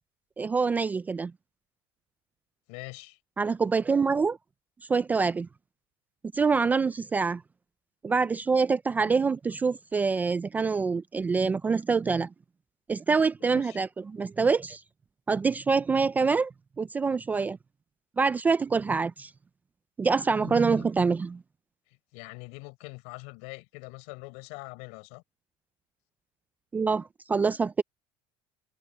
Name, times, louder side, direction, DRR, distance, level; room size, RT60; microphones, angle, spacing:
voice 1, 0.4-1.3 3.4-4.4 4.9-5.5 6.3-7.4 8.0-12.3 12.9-14.8 15.3-17.6 18.2-19.3 20.0-21.4 26.7-27.8, right 4 dB, 15° right, 0.3 m, -25 dB
voice 2, 2.7-3.2 7.1-7.3 9.0-9.1 13.4-13.8 20.4-20.8 21.9-25.2, left 30 dB, 70° left, 5.2 m, -44 dB
cardioid pair, 165°, 13 cm